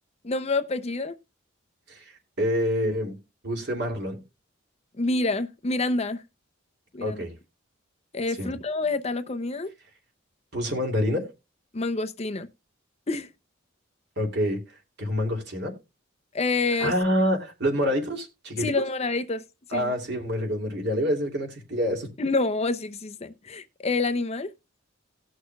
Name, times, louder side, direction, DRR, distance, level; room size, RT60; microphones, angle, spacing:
voice 1, 0.2-1.2 5.0-6.2 6.9-7.2 8.1-9.7 11.7-12.5 13.1-13.3 16.3-16.9 18.6-19.4 19.7-19.9 22.2-24.5, left 3 dB, 35° left, 0.6 m, -27 dB
voice 2, 2.4-3.2 3.4-4.2 7.0-7.3 8.4-8.5 10.5-11.3 14.2-14.6 15.0-15.7 16.8-18.8 19.7-22.1, equal, 60° right, 3.0 m, -27 dB
18.5 x 6.3 x 2.3 m
head